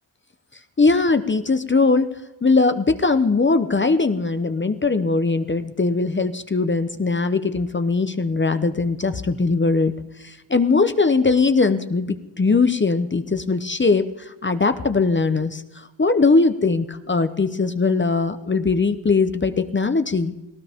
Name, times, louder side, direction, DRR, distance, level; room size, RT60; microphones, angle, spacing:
voice 1, 0.8-2.1 2.4-9.9 10.2-20.3, left 3 dB, 25° left, 10 dB, 0.8 m, -20 dB
18.5 x 18.5 x 3.6 m, 0.97 s
wide cardioid pair, 110°, 45 cm